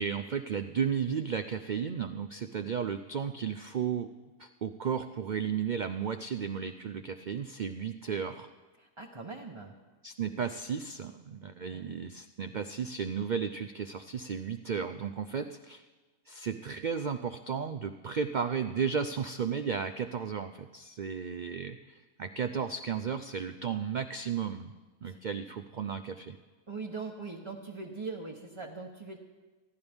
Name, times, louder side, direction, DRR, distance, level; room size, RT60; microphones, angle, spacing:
voice 1, 0.0-4.1 4.4-8.5 10.0-15.8 16.3-24.7 25.0-26.4, right 7 dB, 80° right, 8 dB, 0.4 m, -34 dB
voice 2, 8.8-9.8 11.6-12.0 25.0-25.2 26.7-29.2, right 4 dB, 25° right, 0 dB, 0.9 m, -41 dB
27.0 x 11.5 x 3.5 m, 1.3 s
omnidirectional pair, 1.5 m